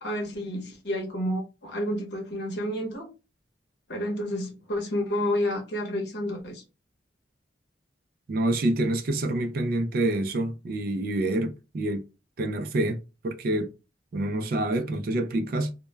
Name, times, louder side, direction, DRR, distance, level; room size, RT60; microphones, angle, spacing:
voice 1, 0.0-3.1 3.9-6.6, left 1 dB, 60° left, 0.8 m, -30 dB
voice 2, 8.3-12.0 12.4-13.7 14.1-15.7, right 1 dB, 50° right, 0.3 m, -27 dB
2.1 x 2.1 x 3.2 m
head